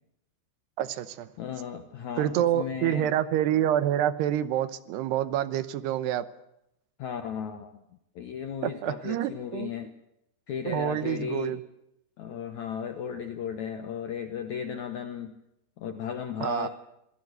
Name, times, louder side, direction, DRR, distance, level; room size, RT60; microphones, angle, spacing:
voice 1, 0.8-1.3 2.2-6.3 8.6-9.7 10.6-11.6 16.4-16.7, right 11 dB, 80° right, 14 dB, 3.0 m, -27 dB
voice 2, 1.4-3.1 7.0-7.8 8.2-9.9 10.5-11.6 12.2-15.3 15.8-16.7, left 7 dB, 70° left, 8 dB, 1.8 m, -35 dB
26.5 x 17.0 x 8.0 m, 0.82 s
omnidirectional pair, 4.9 m